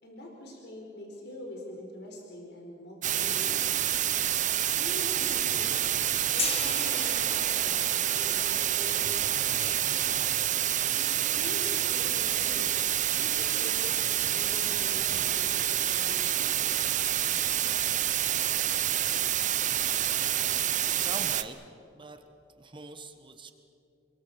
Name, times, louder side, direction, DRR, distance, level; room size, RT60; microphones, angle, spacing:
voice 1, 0.0-3.9 4.7-5.9 6.3-9.7 11.0-12.8 13.1-16.5, left 1 dB, 60° left, 0 dB, 4.6 m, -44 dB
sound 1, 3.0-21.4, right 11 dB, 40° right, 0.9 m, -28 dB
Gong, 6.4-12.3, left 4 dB, 35° left, 2.5 m, -40 dB
voice 2, 20.3-21.6 21.9-22.2 22.6-23.5, right 3 dB, 25° right, 7 dB, 1.5 m, -44 dB
28.5 x 22.5 x 7.2 m, 2.6 s
head